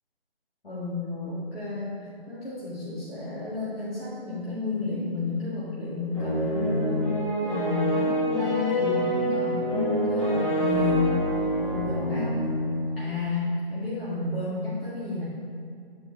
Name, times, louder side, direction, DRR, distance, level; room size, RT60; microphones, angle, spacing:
voice 1, 0.6-7.1 7.4-11.1 11.6-12.6 13.0-15.2, left 3 dB, 70° left, -9 dB, 1.9 m, -31 dB
sound 1, 6.1-13.1, equal, 35° left, 1.8 m, -26 dB
9.0 x 4.2 x 4.6 m, 2.4 s
figure-of-eight pair, 155°, 31 cm